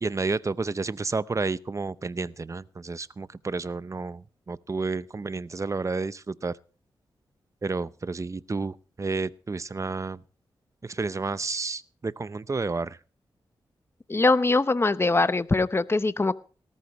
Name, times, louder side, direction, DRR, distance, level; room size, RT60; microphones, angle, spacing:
voice 1, 0.0-6.6 7.6-10.2 10.8-13.0, right 4 dB, 35° right, 0.7 m, -31 dB
voice 2, 14.1-16.3, left 3 dB, 25° left, 0.8 m, -22 dB
18.0 x 14.0 x 3.1 m
cardioid pair, 65°, 9 cm